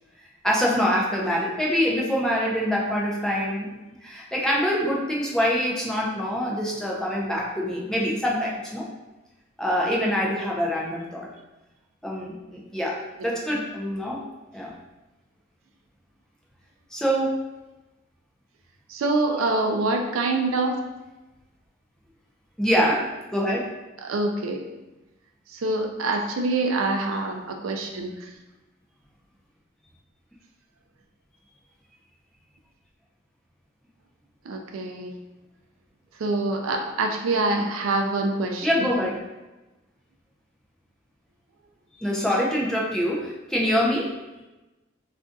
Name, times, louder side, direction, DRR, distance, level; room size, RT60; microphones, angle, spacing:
voice 1, 0.4-8.9 9.6-11.3 12.0-14.2 14.5-14.7 16.9-17.4 22.6-23.7 38.6-39.2 42.0-44.1, equal, 5° left, -4 dB, 0.5 m, -25 dB
voice 2, 18.9-20.9 24.0-24.7 25.5-28.3 34.4-35.1 36.2-38.9, right 2 dB, 90° right, 3 dB, 0.4 m, -25 dB
2.5 x 2.3 x 3.8 m, 1.1 s
head